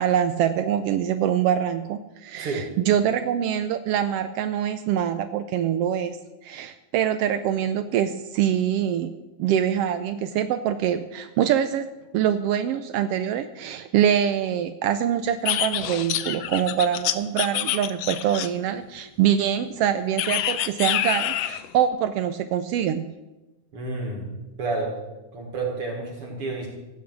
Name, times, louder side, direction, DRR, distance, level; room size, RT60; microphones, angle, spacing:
voice 1, 0.0-6.2 6.4-9.1 9.4-11.9 12.1-23.1, right 9 dB, 90° right, 10 dB, 1.3 m, -24 dB
sound 1, 15.5-18.7 20.2-21.7, left 12 dB, 75° left, 1.6 m, -26 dB
voice 2, 23.7-24.3 24.6-24.9 25.3-26.7, right 3 dB, 50° right, 0 dB, 2.7 m, -30 dB
15.5 x 9.5 x 6.2 m, 1.1 s
omnidirectional pair, 3.3 m